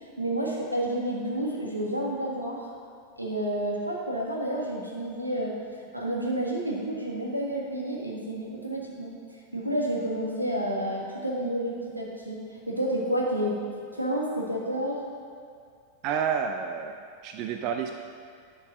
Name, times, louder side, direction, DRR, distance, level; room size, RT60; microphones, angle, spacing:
voice 1, 0.2-2.6 3.2-9.1 9.5-13.6 13.9-15.0, right 1 dB, 85° right, -2 dB, 1.6 m, -30 dB
voice 2, 16.0-17.0 17.2-17.9, right 7 dB, 40° right, 5 dB, 0.5 m, -29 dB
10.5 x 5.4 x 6.1 m, 2.3 s
figure-of-eight pair, 90°, 0 cm